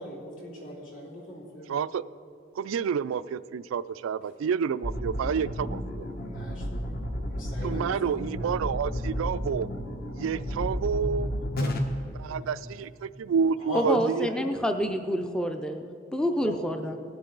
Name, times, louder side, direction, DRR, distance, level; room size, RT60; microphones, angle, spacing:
voice 1, 0.0-1.7 6.2-7.0 7.3-8.2 12.2-12.6 13.6-14.6 16.3-16.8, left 1 dB, 70° left, -4 dB, 3.2 m, -39 dB
voice 2, 1.7-2.0 2.6-6.1 7.6-9.7 10.2-11.3 11.6-11.8 12.2-14.3, right 6 dB, 85° right, 16 dB, 0.3 m, -29 dB
sound 1, 4.8-11.8, equal, 50° left, 1.1 m, -32 dB
voice 3, 13.7-15.8 16.1-17.0, equal, 5° left, 6 dB, 0.4 m, -27 dB
18.5 x 8.3 x 3.9 m, 2.4 s
head